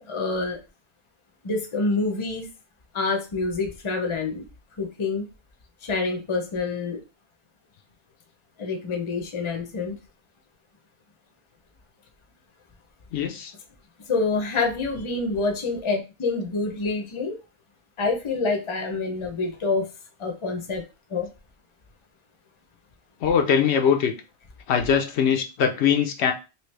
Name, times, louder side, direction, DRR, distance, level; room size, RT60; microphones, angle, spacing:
voice 1, 0.1-0.6 1.4-2.5 2.9-4.4 4.8-5.3 5.8-7.0 8.6-10.0 14.1-17.4 18.0-19.9 20.2-20.8 21.1-21.3, left 3 dB, 35° left, 3 dB, 0.6 m, -27 dB
voice 2, 13.1-13.5 23.2-24.1 24.7-26.3, left 7 dB, 80° left, 4 dB, 0.9 m, -21 dB
3.1 x 2.8 x 3.2 m, 0.30 s
omnidirectional pair, 1.1 m